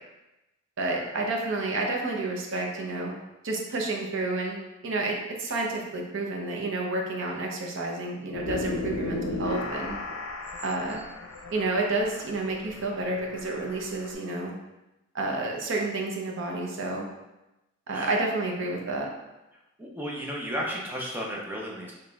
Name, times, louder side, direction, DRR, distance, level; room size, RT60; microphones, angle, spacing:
voice 1, 0.8-3.1 3.4-4.6 4.8-10.0 10.6-11.0 11.5-14.5 15.1-17.1 17.9-19.1, right 2 dB, 65° right, 0 dB, 0.6 m, -30 dB
sound 1, 8.3-14.1, left 2 dB, 80° left, 0.6 m, -35 dB
voice 2, 19.8-21.9, equal, 10° right, -3 dB, 0.5 m, -34 dB
4.1 x 3.2 x 2.3 m, 0.98 s
head